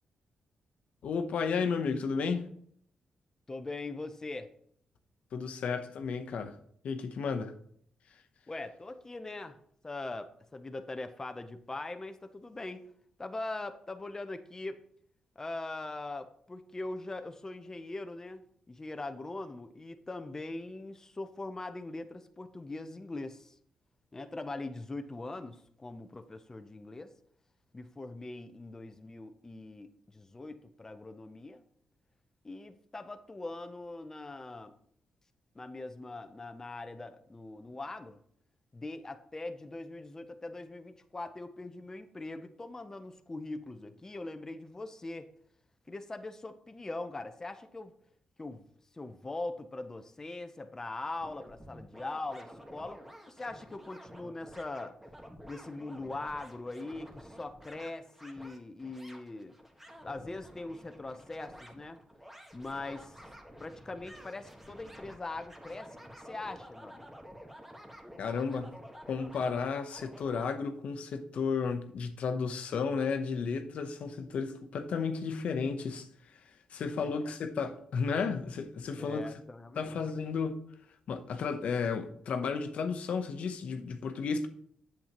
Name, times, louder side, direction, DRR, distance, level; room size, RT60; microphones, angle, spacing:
voice 1, 1.0-2.5 5.3-6.6 6.8-7.5 68.2-68.7 69.1-76.1 76.7-79.3 79.8-80.7 81.1-84.5, left 5 dB, 70° left, 0.8 m, -33 dB
voice 2, 3.5-4.5 8.5-9.6 9.8-12.8 13.2-14.8 15.4-18.4 18.7-23.6 24.1-27.1 27.7-31.6 32.4-34.7 35.5-38.2 38.7-45.3 45.9-47.9 48.4-48.6 48.9-55.0 55.5-59.6 60.0-62.0 62.5-63.2 63.6-67.1 77.0-77.1 79.0-79.9, left 2 dB, 25° left, 0.7 m, -41 dB
sound 1, 51.2-70.5, equal, 10° right, 1.4 m, -51 dB
8.2 x 7.3 x 3.0 m
cardioid pair, 80°, 2 cm